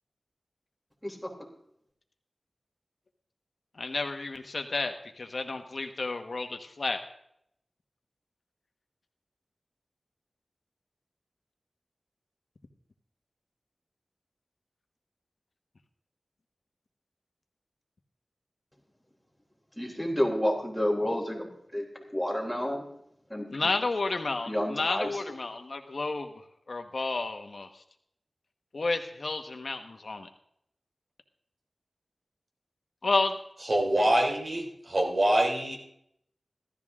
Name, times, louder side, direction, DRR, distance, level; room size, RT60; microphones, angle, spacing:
voice 1, 3.8-7.0 23.5-27.8 28.7-30.3 33.0-33.4, left 3 dB, 65° left, 6 dB, 1.2 m, -31 dB
voice 2, 19.8-21.5 21.7-21.9 22.1-22.8 23.3-23.7 24.5-25.1, left 1 dB, ahead, 1 dB, 3.7 m, -29 dB
voice 3, 33.7-35.8, right 1 dB, 55° right, 1 dB, 3.1 m, -25 dB
16.0 x 13.0 x 3.7 m, 0.72 s
wide cardioid pair, 90°, 0 cm